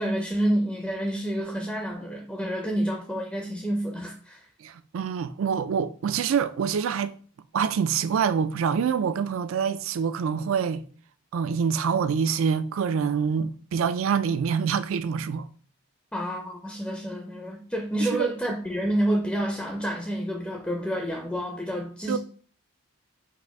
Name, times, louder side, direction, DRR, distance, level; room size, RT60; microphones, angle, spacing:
voice 1, 0.0-4.5 16.1-22.2, right 1 dB, 5° left, 0.4 m, -28 dB
voice 2, 4.6-7.1 7.5-10.8 11.3-15.5 18.0-18.3 22.1-22.2, right 6 dB, 65° right, 0.3 m, -26 dB
4.2 x 2.6 x 4.6 m
head